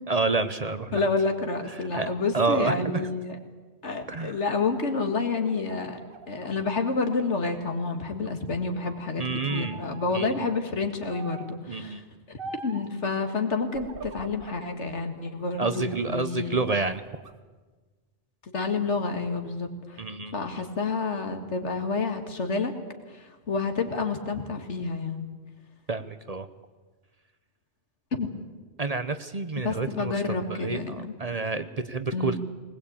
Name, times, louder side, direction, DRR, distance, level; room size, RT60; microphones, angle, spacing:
voice 1, 0.1-1.0 1.8-2.1 2.3-3.1 4.1-4.4 9.2-9.8 10.1-10.5 11.7-12.0 15.6-17.0 20.0-20.3 25.9-26.5 28.8-30.1 30.4-32.4, right 3 dB, 35° right, 11 dB, 0.9 m, -29 dB
voice 2, 0.9-3.4 3.8-6.0 6.3-12.0 12.3-16.6 18.5-20.0 20.3-22.7 23.1-25.3 28.1-28.3 29.6-31.1 32.1-32.4, left 4 dB, 85° left, 6 dB, 2.3 m, -29 dB
sound 1, 4.7-7.8 8.2-9.1 9.5-10.1 11.1-11.6 12.4-12.9 13.7-14.7 15.2-16.2 16.6-17.3, right 4 dB, 55° right, 1.2 m, -44 dB
20.0 x 19.5 x 8.8 m, 1.4 s
omnidirectional pair, 1.2 m